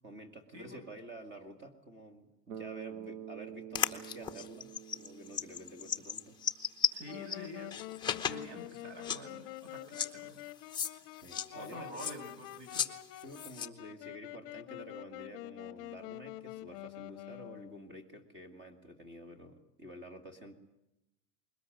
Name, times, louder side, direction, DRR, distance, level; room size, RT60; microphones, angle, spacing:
voice 1, 0.0-6.4 11.1-11.9 13.2-20.6, right 1 dB, 20° right, 7 dB, 2.2 m, -50 dB
Bass guitar, 2.5-6.5, right 9 dB, 85° right, 1.2 m, -48 dB
sound 1, 3.7-7.4 7.7-8.4 8.8-8.9 9.0-9.2 9.9-10.1 10.7-10.9 11.2-12.9 13.2-13.7, left 7 dB, 10° left, 0.9 m, -35 dB
voice 2, 6.9-7.7 8.1-10.4 11.5-12.9, equal, 55° right, 7 dB, 7.3 m, -47 dB
Wind instrument woodwind instrument, 7.0-18.0, left 17 dB, 50° left, 0.8 m, -47 dB
21.5 x 19.5 x 9.3 m, 0.89 s
supercardioid pair, 155°, 50 cm